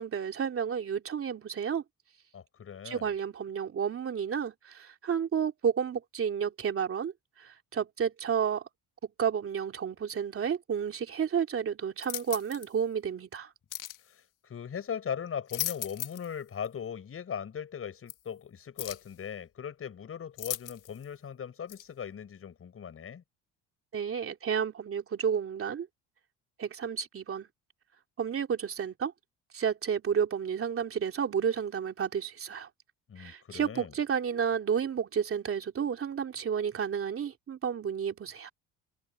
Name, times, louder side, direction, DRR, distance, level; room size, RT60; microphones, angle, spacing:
voice 1, 0.0-1.8 2.8-7.1 7.4-8.6 9.2-13.5 23.9-25.9 26.6-27.5 28.2-29.1 29.5-32.7 33.2-38.5, right 7 dB, 40° right, 3.0 m, -31 dB
voice 2, 2.3-3.1 14.0-23.2 33.1-33.9, left 7 dB, 40° left, 6.6 m, -39 dB
sound 1, 12.0-12.7 13.7-14.0 15.3-16.3 16.6-16.7 18.1-18.2 18.8-19.1 20.4-21.0 21.7-21.8, left 13 dB, 65° left, 1.5 m, -37 dB
cardioid pair, 100°, 34 cm